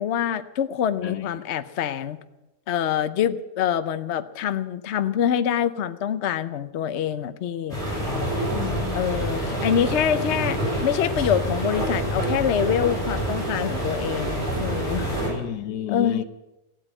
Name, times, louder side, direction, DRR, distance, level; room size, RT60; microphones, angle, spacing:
voice 1, 0.0-2.2 2.7-7.8 8.9-15.1 15.9-16.2, left 9 dB, 55° left, 11 dB, 0.8 m, -25 dB
sound 1, 7.7-15.3, right 1 dB, ahead, 8.0 m, -27 dB
voice 2, 8.5-9.0 15.3-16.2, left 11 dB, 75° left, 11 dB, 1.5 m, -31 dB
15.5 x 9.0 x 9.9 m, 0.98 s
omnidirectional pair, 1.8 m